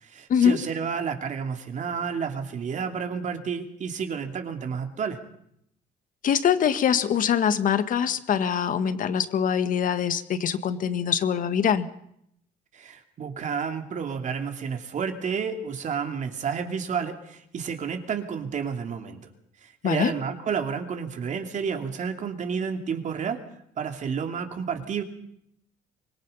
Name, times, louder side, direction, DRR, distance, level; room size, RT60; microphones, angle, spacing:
voice 1, 0.0-5.2 12.7-19.3 19.6-23.4 23.8-25.0, right 6 dB, 45° right, 5 dB, 2.8 m, -30 dB
voice 2, 6.2-11.9 19.8-20.1, left 8 dB, 55° left, 11 dB, 1.7 m, -23 dB
25.0 x 21.5 x 5.6 m, 0.72 s
cardioid pair, 110°, 17 cm